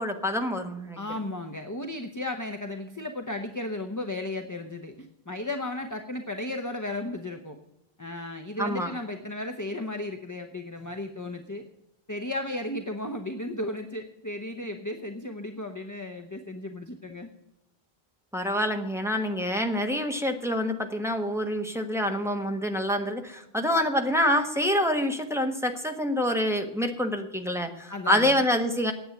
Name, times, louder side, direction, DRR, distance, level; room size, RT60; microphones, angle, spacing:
voice 1, 0.0-1.0 8.6-8.9 18.3-28.9, equal, 5° right, 4 dB, 1.3 m, -26 dB
voice 2, 1.0-7.6 8.0-11.6 12.1-17.3 27.9-28.4, left 1 dB, 20° left, 5 dB, 0.8 m, -34 dB
9.5 x 8.5 x 9.1 m, 0.90 s
omnidirectional pair, 1.0 m